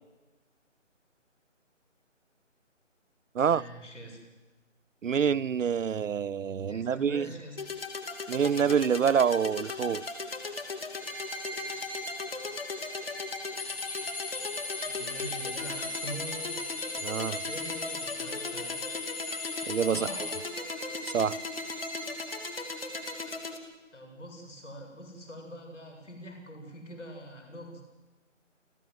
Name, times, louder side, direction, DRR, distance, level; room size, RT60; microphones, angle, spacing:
voice 1, 3.4-4.2 6.7-7.6 14.8-16.7 17.4-18.7 19.9-20.5 23.9-27.8, equal, 70° left, 7.7 m, -44 dB
voice 2, 5.0-7.3 8.3-10.0 17.0-17.4 19.7-20.3 21.0-21.4, right 7 dB, 80° right, 0.7 m, -27 dB
sound 1, 7.6-23.6, left 3 dB, 50° left, 2.7 m, -38 dB
Bowed string instrument, 11.0-23.5, right 2 dB, 10° left, 1.3 m, -43 dB
sound 2, 13.6-20.4, left 4 dB, 30° left, 2.4 m, -39 dB
29.0 x 15.0 x 7.9 m
figure-of-eight pair, 175°, 38 cm